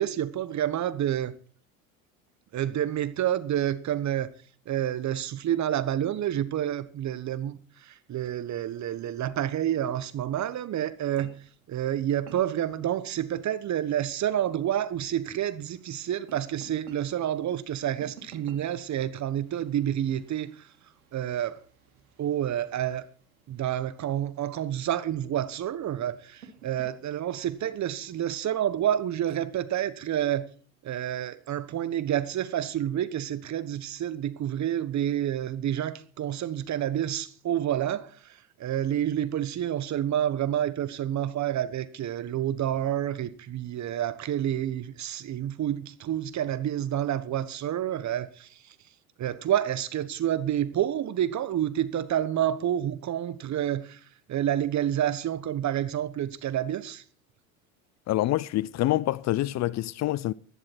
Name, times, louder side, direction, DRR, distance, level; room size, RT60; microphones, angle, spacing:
voice 1, 0.0-1.3 2.5-4.3 4.7-11.3 11.7-20.7 21.1-21.6 22.2-23.1 23.5-30.4 30.8-48.7 49.2-54.0 54.3-57.0, right 11 dB, 40° right, 1.3 m, -29 dB
sound 1, 10.7-29.8, right 5 dB, 90° right, 2.8 m, -57 dB
voice 2, 58.1-60.3, left 15 dB, 40° left, 0.5 m, -26 dB
15.0 x 11.0 x 4.5 m
hypercardioid pair, 75°, 42 cm